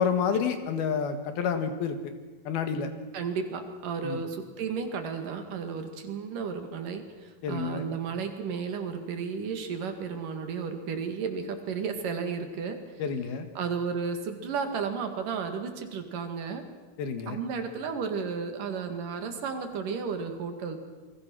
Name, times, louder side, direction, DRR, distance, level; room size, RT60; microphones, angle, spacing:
voice 1, 0.0-2.1 2.5-2.9 4.0-4.2 7.4-7.8 13.0-13.5 17.0-17.4, left 6 dB, 85° left, 8 dB, 3.7 m, -29 dB
voice 2, 3.1-12.8 13.6-16.7 17.3-20.8, right 5 dB, 65° right, 7 dB, 3.6 m, -33 dB
28.0 x 22.5 x 6.2 m, 1.3 s
omnidirectional pair, 4.2 m